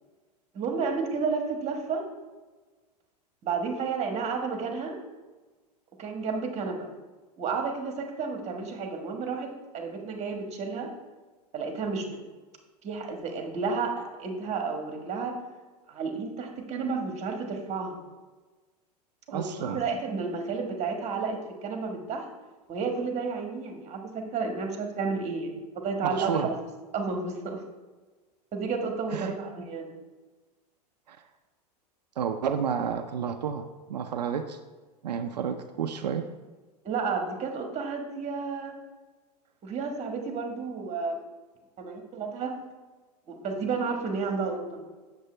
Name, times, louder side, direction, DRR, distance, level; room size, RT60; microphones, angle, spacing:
voice 1, 0.5-2.0 3.4-4.9 6.0-6.9 7.4-10.9 11.5-12.1 12.8-15.3 15.9-18.0 19.3-22.2 22.7-26.6 26.9-27.6 28.5-29.9 36.8-38.7 39.6-41.2 41.8-42.5 43.3-44.9, right 4 dB, 35° right, 3 dB, 1.5 m, -31 dB
voice 2, 19.3-19.8 26.0-26.5 29.1-29.4 31.1-31.2 32.2-34.6 35.0-36.3, right 7 dB, 85° right, 6 dB, 0.5 m, -31 dB
7.9 x 6.8 x 3.3 m, 1.3 s
hypercardioid pair, 100°, 21 cm